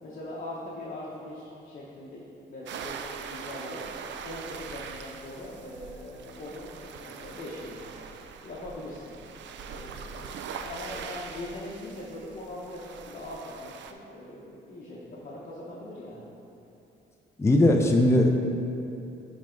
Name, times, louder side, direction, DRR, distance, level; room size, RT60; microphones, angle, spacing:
voice 1, 0.0-3.8 4.2-7.8 8.4-9.2 9.6-16.3, left 1 dB, 45° left, -6 dB, 1.1 m, -41 dB
sound 1, 2.7-13.9, right 6 dB, 65° right, 0.5 m, -42 dB
voice 2, 17.4-18.4, left 1 dB, 15° left, 2 dB, 0.5 m, -20 dB
9.9 x 3.5 x 3.9 m, 2.8 s
cardioid pair, 90°, 20 cm